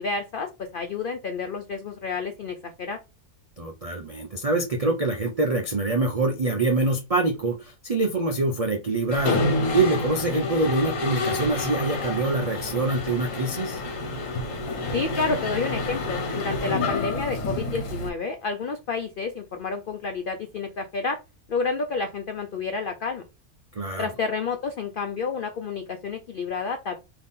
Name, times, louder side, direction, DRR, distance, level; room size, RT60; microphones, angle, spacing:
voice 1, 0.0-3.0 14.9-21.2 21.5-23.2 24.0-26.9, left 4 dB, 75° left, 0.4 m, -30 dB
voice 2, 3.6-9.4 9.7-13.8 23.7-24.0, right 2 dB, 60° right, 0.3 m, -25 dB
Mechanisms, 9.1-18.1, left 2 dB, 60° left, 1.3 m, -28 dB
3.6 x 2.9 x 4.0 m
omnidirectional pair, 1.6 m